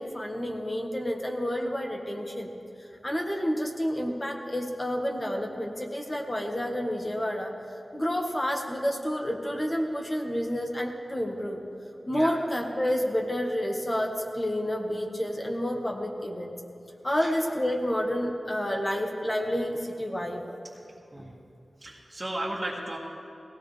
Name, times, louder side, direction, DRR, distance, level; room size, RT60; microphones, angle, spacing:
voice 1, 0.0-2.5 3.0-7.5 7.9-11.6 12.1-16.5 17.0-20.4 21.2-21.3, equal, 30° left, 1 dB, 1.6 m, -29 dB
voice 2, 21.8-23.0, right 1 dB, 25° right, -8 dB, 1.9 m, -35 dB
18.0 x 16.5 x 3.4 m, 2.8 s
wide cardioid pair, 70°, 0 cm